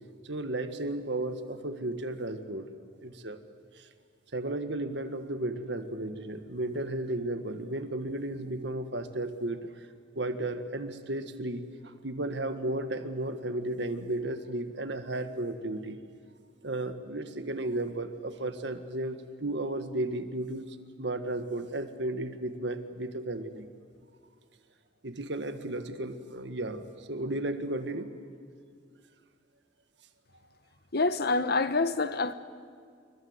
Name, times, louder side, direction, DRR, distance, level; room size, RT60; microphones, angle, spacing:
voice 1, 0.2-2.6 3.0-3.4 3.8-3.9 4.3-9.9 10.2-16.0 16.6-20.7 21.0-23.7 25.0-28.1, right 1 dB, 65° right, 1.7 m, -34 dB
voice 2, 30.9-32.3, left 3 dB, 55° left, 1.1 m, -26 dB
28.5 x 23.0 x 8.1 m
head